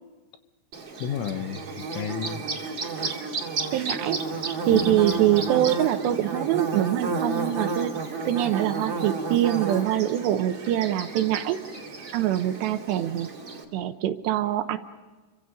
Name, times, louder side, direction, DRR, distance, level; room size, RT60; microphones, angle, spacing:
Bird / Buzz, 0.7-13.6, right 4 dB, 30° right, 2.6 m, -32 dB
voice 1, 1.0-2.4 4.7-5.3, left 9 dB, 90° left, 9 dB, 3.7 m, -32 dB
voice 2, 3.7-4.2 4.7-7.9 8.3-11.6 12.1-13.3 13.7-14.8, right 12 dB, 75° right, 8 dB, 2.9 m, -24 dB
29.5 x 24.5 x 5.4 m, 1.2 s
omnidirectional pair, 5.5 m